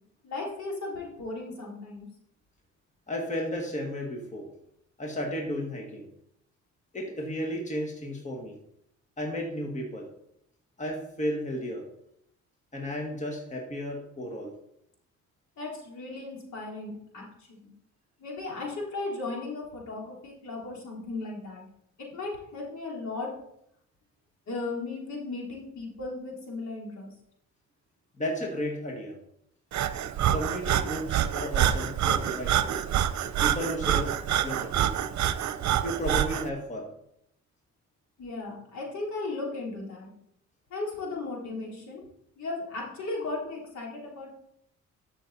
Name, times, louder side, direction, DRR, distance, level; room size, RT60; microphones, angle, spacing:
voice 1, 0.2-2.1 15.6-17.7 18.2-21.6 22.0-23.3 24.5-27.1 38.2-40.1 40.7-42.0 42.4-44.3, left 3 dB, 65° left, -2 dB, 3.6 m, -36 dB
voice 2, 3.1-4.5 5.0-6.1 6.9-8.6 9.2-10.1 10.8-11.9 12.7-14.5 28.2-29.2 30.3-32.7 33.4-34.9 35.8-36.9, equal, 25° left, 0 dB, 2.0 m, -33 dB
Breathing, 29.7-36.5, right 10 dB, 65° right, 0.8 m, -27 dB
12.0 x 6.3 x 4.2 m, 0.75 s
cardioid pair, 90°, 30 cm